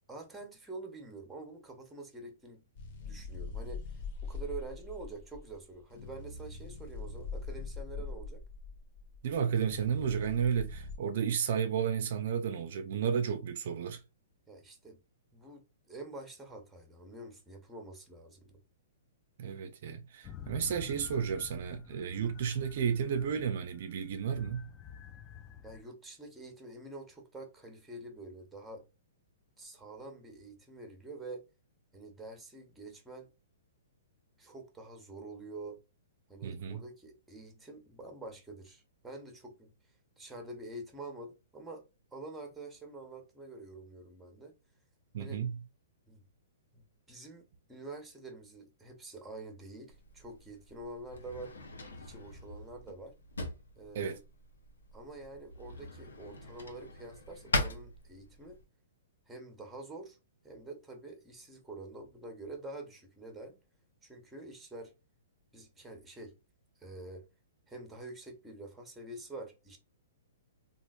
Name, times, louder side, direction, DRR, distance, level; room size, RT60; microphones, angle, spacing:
voice 1, 0.1-2.6 3.0-8.4 14.5-15.0 15.3-18.6 25.6-28.8 29.6-31.4 31.9-33.3 34.4-35.8 36.3-39.7 40.2-41.8 42.1-44.5 45.2-45.4 46.1-46.2 46.7-51.5 52.0-53.2 53.8-54.2 54.9-58.6 59.3-60.2 60.4-63.6 64.0-64.9 65.5-66.3 66.8-67.3 67.7-69.8, right 2 dB, 5° right, 0.9 m, -47 dB
sound 1, 2.8-11.0, left 4 dB, 50° left, 0.8 m, -42 dB
voice 2, 9.2-14.0 19.4-24.7 36.4-36.8 45.1-45.6 53.9-54.2, right 7 dB, 55° right, 0.4 m, -32 dB
sound 2, 20.2-25.8, left 9 dB, 25° left, 0.4 m, -50 dB
Drawer open or close, 49.9-58.6, left 2 dB, 80° left, 0.8 m, -41 dB
3.1 x 2.4 x 2.3 m
hypercardioid pair, 120°, 0 cm